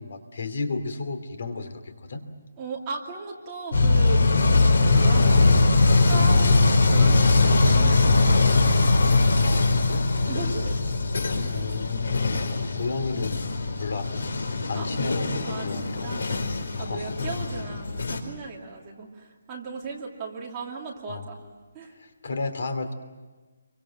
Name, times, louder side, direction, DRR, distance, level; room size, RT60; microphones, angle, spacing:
voice 1, 0.0-2.2 9.3-10.1 11.5-13.3 13.8-14.1 14.7-16.1 16.7-17.1 21.1-21.3 22.0-22.9, left 3 dB, 50° left, 9 dB, 2.8 m, -33 dB
voice 2, 2.6-4.3 4.6-8.6 10.3-10.7 14.6-16.5 16.8-21.4 21.7-21.9, right 4 dB, 15° right, -3 dB, 2.5 m, -37 dB
sound 1, 3.7-18.2, left 3 dB, 70° left, 4.6 m, -21 dB
29.5 x 24.5 x 7.6 m, 1.3 s
hypercardioid pair, 180°, 0 cm